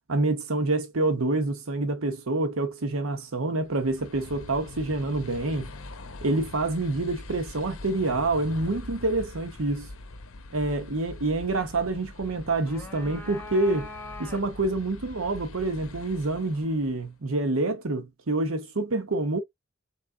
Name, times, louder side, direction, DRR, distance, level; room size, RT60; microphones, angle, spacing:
voice 1, 0.1-5.7 6.2-9.9 10.5-13.9 14.2-19.4, right 2 dB, 75° right, 0.9 m, -27 dB
sound 1, 3.6-17.1, left 2 dB, 75° left, 0.8 m, -43 dB
sound 2, 12.4-14.7, left 2 dB, 10° left, 1.2 m, -42 dB
4.2 x 3.4 x 3.7 m
head